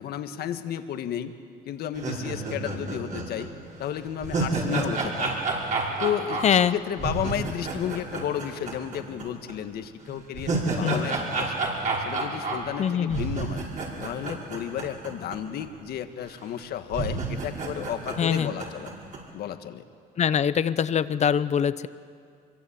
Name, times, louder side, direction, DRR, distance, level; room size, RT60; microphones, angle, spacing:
voice 1, 0.0-1.3 1.7-3.5 3.8-5.4 5.8-11.6 12.0-13.6 14.0-18.9 19.3-19.8, left 10 dB, 70° left, 8 dB, 1.6 m, -33 dB
sound 1, 1.9-9.2 9.5-9.6 10.1-15.4 15.6-15.7 16.4-16.5 16.9-19.2, right 3 dB, 50° right, 5.8 m, -30 dB
voice 2, 6.4-6.7 10.8-11.0 12.8-13.2 18.2-18.5 20.2-21.9, left 8 dB, 40° left, 15 dB, 0.8 m, -23 dB
25.5 x 23.0 x 8.7 m, 2.3 s
cardioid pair, 110°, 17 cm